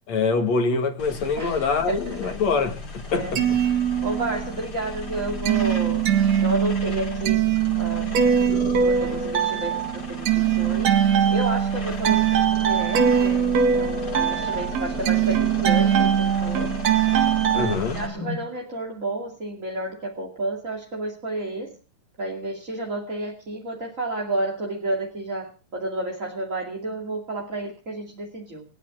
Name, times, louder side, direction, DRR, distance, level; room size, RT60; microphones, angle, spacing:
voice 1, 0.1-3.4 17.5-18.0, left 4 dB, 50° left, 3.1 m, -24 dB
sound 1, 1.0-18.1, left 3 dB, 30° left, 2.9 m, -36 dB
voice 2, 1.4-2.3 3.1-3.3 4.0-6.1 6.4-7.4 7.8-8.2 8.7-10.9 11.3-12.2 12.6-16.7 17.6-21.8 22.2-28.6, right 2 dB, 25° right, 2.3 m, -31 dB
sound 2, 3.1-4.6 4.9-17.7, right 8 dB, 55° right, 2.6 m, -22 dB
29.0 x 9.7 x 3.8 m
omnidirectional pair, 4.3 m